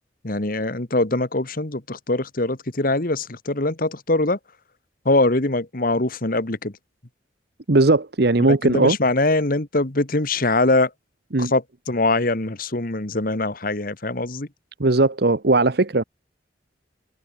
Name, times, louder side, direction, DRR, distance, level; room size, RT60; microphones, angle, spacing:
voice 1, 0.2-4.4 5.0-6.7 8.6-10.9 11.4-14.5, left 2 dB, 50° left, 1.7 m, -22 dB
voice 2, 7.7-9.0 11.3-11.5 14.8-16.0, right 2 dB, 55° right, 1.0 m, -18 dB
head